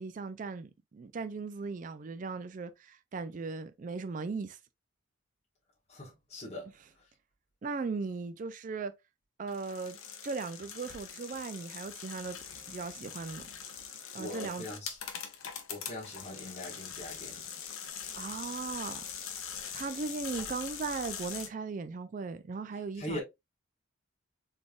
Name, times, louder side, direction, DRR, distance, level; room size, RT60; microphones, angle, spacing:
voice 1, 0.0-4.6 7.6-8.9 9.4-12.4 12.7-13.5 14.1-14.7 18.1-19.0 19.7-23.2, right 4 dB, 40° right, 0.3 m, -38 dB
voice 2, 5.9-6.7 14.2-15.0 15.7-17.4 23.0-23.2, left 1 dB, 30° left, 1.3 m, -41 dB
sound 1, 9.5-21.5, left 7 dB, 85° left, 0.8 m, -43 dB
4.1 x 3.4 x 2.3 m
head